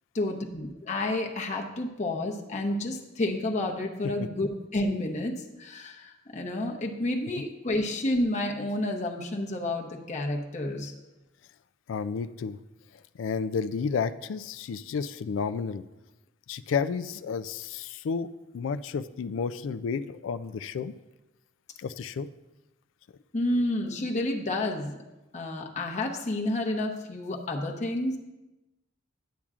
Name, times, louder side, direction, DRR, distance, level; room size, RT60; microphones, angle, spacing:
voice 1, 0.1-10.9 23.3-25.0 25.3-28.2, left 1 dB, 40° left, 1 dB, 0.8 m, -30 dB
voice 2, 11.9-12.6 13.2-15.8 16.5-20.9 21.8-22.3, left 5 dB, 85° left, 14 dB, 0.3 m, -31 dB
10.5 x 8.5 x 2.4 m, 1.0 s
head